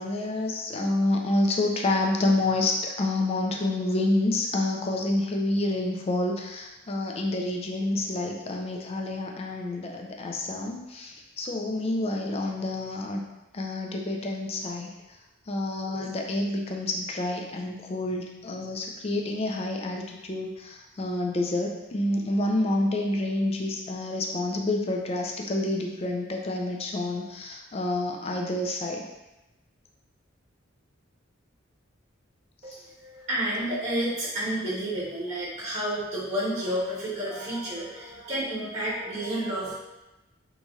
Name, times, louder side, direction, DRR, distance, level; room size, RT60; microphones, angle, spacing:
voice 1, 0.0-13.2 13.5-14.9 15.5-29.0 32.7-32.8, left 2 dB, 30° left, 1 dB, 0.3 m, -28 dB
voice 2, 32.6-39.7, right 1 dB, 35° right, -10 dB, 1.2 m, -30 dB
3.0 x 2.7 x 2.3 m, 0.99 s
head